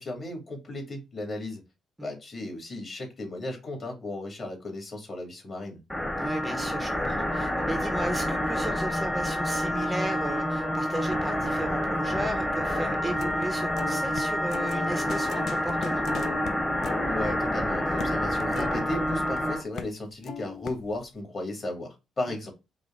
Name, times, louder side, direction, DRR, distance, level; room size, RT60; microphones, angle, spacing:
voice 1, 0.0-1.6 2.0-5.8 17.0-22.5, left 2 dB, 40° left, 2.1 m, -35 dB
sound 1, 5.9-19.6, equal, 10° left, 1.0 m, -28 dB
voice 2, 6.2-16.1, right 1 dB, 10° right, 0.6 m, -35 dB
sound 2, 13.2-13.5 13.8-19.4 19.8-20.0 20.2-21.1, left 7 dB, 65° left, 0.4 m, -39 dB
4.8 x 2.3 x 3.6 m
cardioid pair, 90°, 0 cm